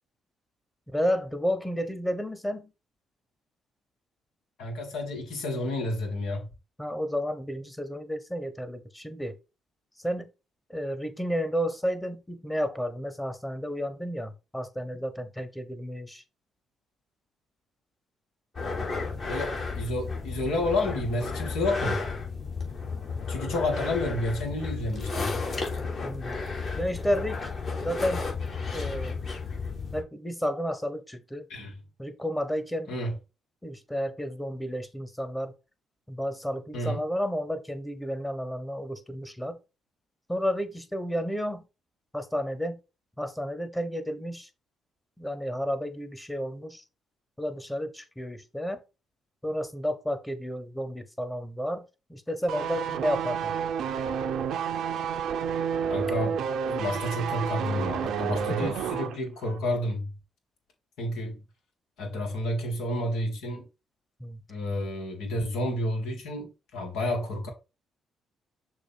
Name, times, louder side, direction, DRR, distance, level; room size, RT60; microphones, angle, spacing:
voice 1, 0.9-2.7 6.8-9.4 10.0-10.3 10.7-16.2 26.0-26.4 26.8-28.2 28.7-29.2 29.9-31.5 32.0-33.0 33.6-35.5 36.1-39.6 40.3-41.6 42.1-42.8 43.2-44.5 45.2-46.8 47.4-48.8 49.4-53.6 58.6-58.7 64.2-64.4, equal, 10° left, 1.3 m, -31 dB
voice 2, 4.6-6.5 19.3-22.1 23.3-25.4 31.5-31.7 32.9-33.1 36.7-37.0 55.9-56.4 56.6-60.1 61.0-61.4 62.0-63.6 64.5-67.5, left 1 dB, 75° left, 1.8 m, -30 dB
sound 1, 18.5-30.0, left 4 dB, 50° left, 3.0 m, -33 dB
sound 2, 52.5-59.2 59.4-59.6, right 7 dB, 70° right, 0.6 m, -30 dB
6.3 x 2.8 x 5.3 m
hypercardioid pair, 45°, 0 cm